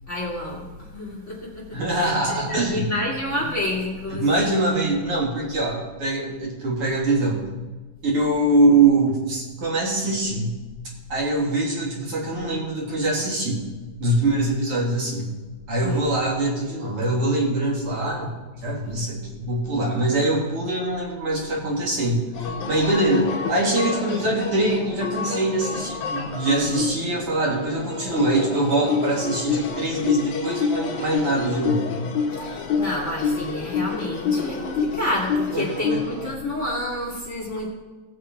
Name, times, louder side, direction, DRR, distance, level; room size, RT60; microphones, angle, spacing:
voice 1, 0.1-0.7 0.9-1.6 2.0-2.1 2.5-4.6 15.8-16.0 32.4-37.7, left 1 dB, 30° left, -3 dB, 1.4 m, -29 dB
voice 2, 1.7-2.9 4.1-7.4 8.0-10.5 11.1-13.6 14.0-15.3 15.7-31.8 35.5-36.0, right 2 dB, 40° right, -3 dB, 2.5 m, -23 dB
sound 1, 22.3-36.3, left 5 dB, 65° left, 1.9 m, -27 dB
20.0 x 6.7 x 4.6 m, 1.3 s
omnidirectional pair, 5.3 m